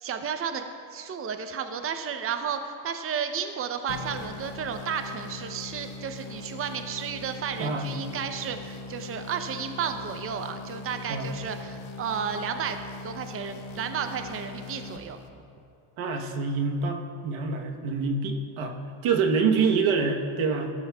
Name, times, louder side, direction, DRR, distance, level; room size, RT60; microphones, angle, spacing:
voice 1, 0.0-0.6 0.9-12.8 13.0-15.2, right 7 dB, 30° right, 7 dB, 0.6 m, -32 dB
sound 1, 3.9-15.6, left 3 dB, 80° left, 0.9 m, -41 dB
voice 2, 7.6-7.9 11.1-11.3 16.0-20.7, right 4 dB, 80° right, 3 dB, 1.1 m, -26 dB
14.0 x 12.5 x 2.3 m, 2.4 s
cardioid pair, 95°, 48 cm